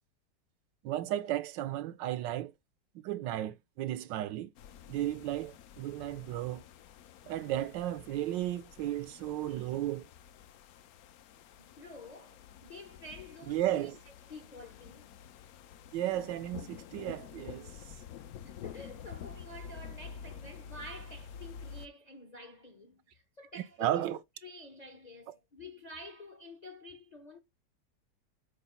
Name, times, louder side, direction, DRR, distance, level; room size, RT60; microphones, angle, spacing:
voice 1, 0.8-2.5 3.0-4.5 4.9-6.6 7.3-10.1 13.5-14.0 15.9-17.7 23.5-24.2 25.3-25.4, right 13 dB, 80° right, 1.3 m, -34 dB
sound 1, 4.6-21.9, left 8 dB, 70° left, 0.9 m, -49 dB
voice 2, 11.3-13.9 14.3-15.1 18.4-24.1 24.4-27.4, left 2 dB, 40° left, 0.5 m, -49 dB
5.1 x 4.3 x 5.5 m
omnidirectional pair, 2.0 m